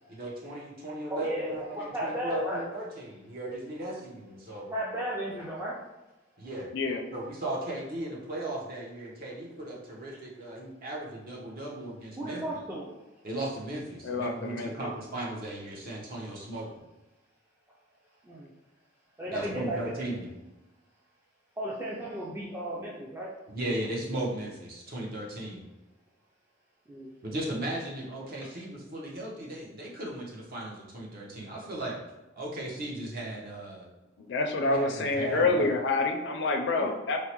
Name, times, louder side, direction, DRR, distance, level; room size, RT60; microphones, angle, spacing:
voice 1, 0.1-4.7 6.4-6.7 7.1-12.4 13.2-16.7 19.3-20.3 23.5-25.6 27.2-32.0 32.4-33.9 34.6-35.7, right 1 dB, 50° right, -3 dB, 0.8 m, -36 dB
voice 2, 1.1-2.6 4.7-5.7 12.2-12.9 18.2-18.5 19.2-19.9 21.6-23.3 26.9-27.1 36.8-36.9, right 1 dB, 10° right, -6 dB, 0.4 m, -34 dB
voice 3, 14.0-14.9 34.2-37.2, left 3 dB, 60° left, 3 dB, 0.4 m, -27 dB
4.6 x 2.0 x 2.9 m, 1.0 s
head